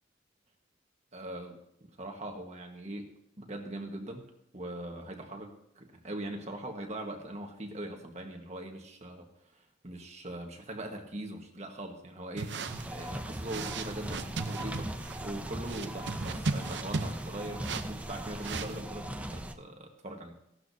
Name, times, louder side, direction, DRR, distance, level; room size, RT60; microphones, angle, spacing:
voice 1, 1.1-3.1 3.4-12.6 12.9-14.9 15.2-20.4, right 1 dB, 40° right, 2 dB, 1.4 m, -41 dB
sound 1, 12.4-18.8, right 3 dB, 65° right, 0.7 m, -38 dB
sound 2, 12.7-19.5, right 1 dB, 10° right, 0.6 m, -39 dB
16.5 x 12.5 x 2.7 m, 0.77 s
head